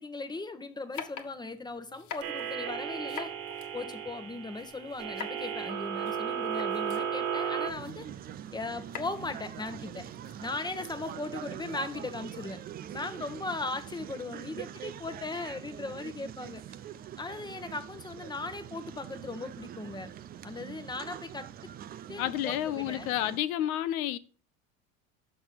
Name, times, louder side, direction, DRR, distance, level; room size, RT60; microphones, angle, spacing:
voice 1, 0.0-3.3 3.7-8.1 8.5-10.1 10.4-12.6 12.9-16.6 17.2-20.1 20.4-21.5 22.1-23.1, left 3 dB, 10° left, 1.0 m, -38 dB
sound 1, 0.9-11.8, left 7 dB, 45° left, 1.4 m, -48 dB
sound 2, 2.2-7.7, right 8 dB, 75° right, 1.5 m, -34 dB
sound 3, 7.7-23.4, right 10 dB, 25° right, 0.3 m, -44 dB
voice 2, 22.2-24.2, left 12 dB, 80° left, 0.9 m, -30 dB
6.3 x 5.9 x 6.7 m
supercardioid pair, 110°, 42 cm